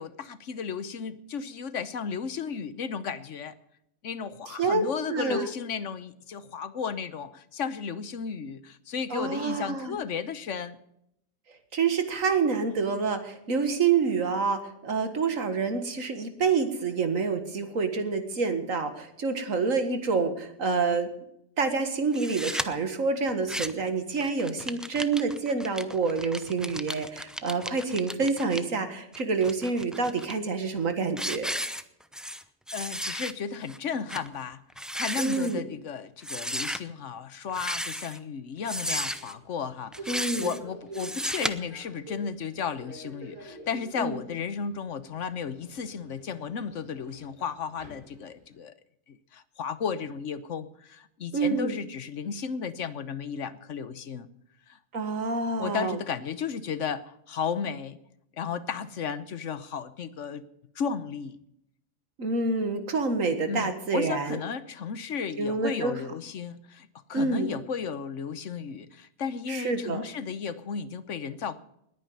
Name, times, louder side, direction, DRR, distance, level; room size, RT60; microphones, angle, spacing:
voice 1, 0.0-3.6 4.0-10.8 32.7-34.6 34.9-48.7 49.1-54.3 54.7-54.8 55.6-58.0 58.3-60.4 60.7-61.4 63.5-71.6, left 6 dB, 65° left, 13 dB, 1.2 m, -34 dB
voice 2, 5.1-5.5 9.1-9.9 11.7-21.1 21.6-31.5 35.2-35.6 40.1-40.5 44.0-44.2 51.3-51.8 54.9-56.0 62.2-64.4 65.4-66.0 67.1-67.5 69.5-70.0, right 4 dB, 75° right, 8 dB, 2.1 m, -27 dB
sound 1, 22.1-22.7 23.3-23.9 24.2-28.6 29.1-30.3 30.8-30.9 31.2-32.4 32.7-33.3 33.7-33.8 34.1-34.3 34.7-35.5 36.2-36.8 37.5-38.2 38.6-39.3 39.9-40.6 40.9-41.5, equal, ahead, 0.5 m, -34 dB
Subway metro underground, 38.8-48.6, right 1 dB, 20° left, 5.1 m, -48 dB
20.5 x 9.3 x 5.5 m, 0.76 s
omnidirectional pair, 1.4 m